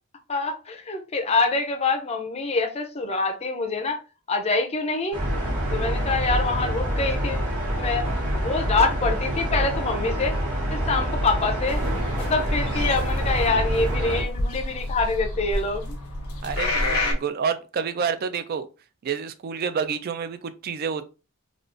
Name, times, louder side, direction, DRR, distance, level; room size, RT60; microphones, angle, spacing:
voice 1, 0.3-4.0 4.3-5.2 5.7-7.5 7.8-8.1 8.3-10.4 10.7-11.8 12.1-16.0, left 3 dB, 30° left, 0.5 m, -25 dB
sound 1, 5.1-14.2, equal, 75° right, 1.2 m, -26 dB
sound 2, 11.7-17.1, left 1 dB, 80° left, 0.9 m, -29 dB
voice 2, 16.4-18.7 19.0-21.0, right 6 dB, 45° right, 0.3 m, -28 dB
3.5 x 2.4 x 2.4 m
head